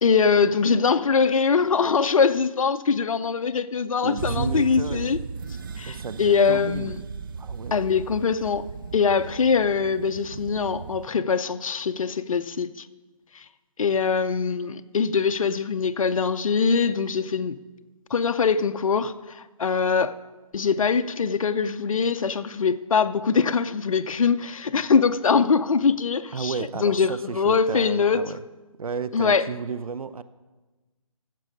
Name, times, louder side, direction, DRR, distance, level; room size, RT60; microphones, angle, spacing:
voice 1, 0.0-5.2 5.8-7.0 7.7-12.9 13.3-13.5 13.8-17.6 18.1-20.1 20.5-28.2 29.1-29.5, left 5 dB, 70° left, 0.6 m, -23 dB
voice 2, 4.0-5.1 5.9-7.0 7.4-7.8 26.3-28.4 28.8-30.2, right 5 dB, 80° right, 0.6 m, -32 dB
sound 1, 4.2-11.1, right 5 dB, 40° right, 0.5 m, -36 dB
14.0 x 7.6 x 5.0 m
figure-of-eight pair, 155°, 18 cm